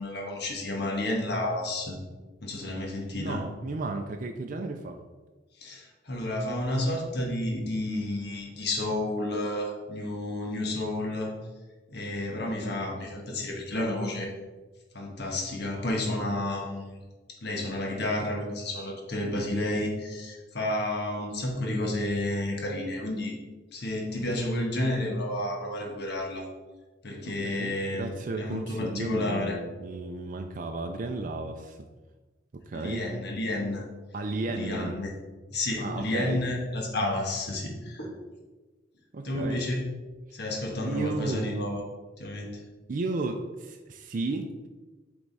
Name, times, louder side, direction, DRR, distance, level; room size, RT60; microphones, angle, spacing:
voice 1, 0.0-2.0 2.4-3.4 5.6-11.3 11.9-14.3 14.9-17.0 17.4-23.4 23.7-26.4 27.0-29.6 32.7-33.8 34.5-35.1 35.5-38.1 39.2-39.8 40.3-41.8 42.2-42.6, left 1 dB, 65° left, 0 dB, 1.4 m, -31 dB
voice 2, 3.2-5.0 27.3-31.8 32.5-33.0 34.1-35.0 35.8-36.4 39.1-39.6 40.8-41.8 42.9-44.7, right 3 dB, 45° right, 5 dB, 0.4 m, -33 dB
7.7 x 3.5 x 4.1 m, 1.2 s
head